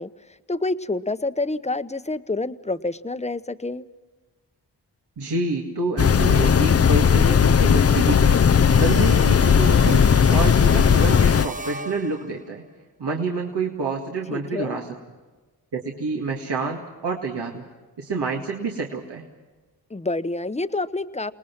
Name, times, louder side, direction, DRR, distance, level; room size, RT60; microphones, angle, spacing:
voice 1, 0.0-3.9 14.3-14.8 19.9-21.3, left 2 dB, 15° left, 12 dB, 1.0 m, -28 dB
voice 2, 5.2-8.4 8.8-12.6 13.0-14.9 15.7-17.6 18.0-19.3, right 3 dB, 75° right, 0 dB, 2.1 m, -28 dB
sound 1, 6.0-11.5, left 7 dB, 35° left, 0.6 m, -17 dB
sound 2, 8.7-12.6, right 1 dB, 20° right, 1.1 m, -36 dB
28.5 x 19.5 x 6.0 m, 1.3 s
cardioid pair, 40°, 41 cm